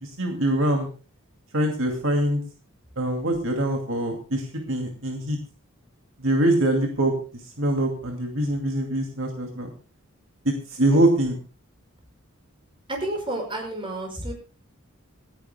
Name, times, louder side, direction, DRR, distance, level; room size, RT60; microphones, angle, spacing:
voice 1, 0.0-0.9 1.5-2.4 3.0-5.4 6.2-7.1 7.6-9.7 10.4-11.4, right 1 dB, 65° right, 3 dB, 2.4 m, -23 dB
voice 2, 12.9-14.3, right 1 dB, 25° right, 3 dB, 5.4 m, -30 dB
27.0 x 10.5 x 2.2 m, 0.37 s
head